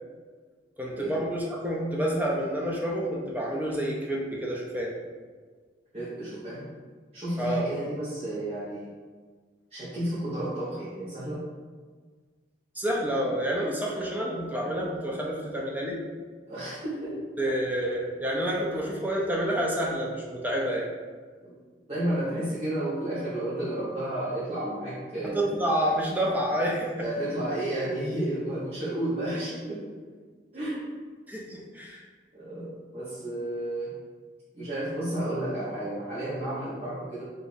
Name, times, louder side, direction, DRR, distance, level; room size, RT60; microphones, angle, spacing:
voice 1, 0.8-4.9 7.4-7.7 12.8-16.0 17.4-20.9 25.3-26.9 31.3-32.0, right 1 dB, 10° right, -3 dB, 0.4 m, -28 dB
voice 2, 5.9-6.7 7.1-8.9 9.7-11.4 16.5-17.2 21.3-21.6 21.9-25.6 27.0-29.9 30.5-30.9 32.3-33.9 34.5-37.2, right 1 dB, 30° right, -11 dB, 0.9 m, -32 dB
2.9 x 2.5 x 4.0 m, 1.5 s
head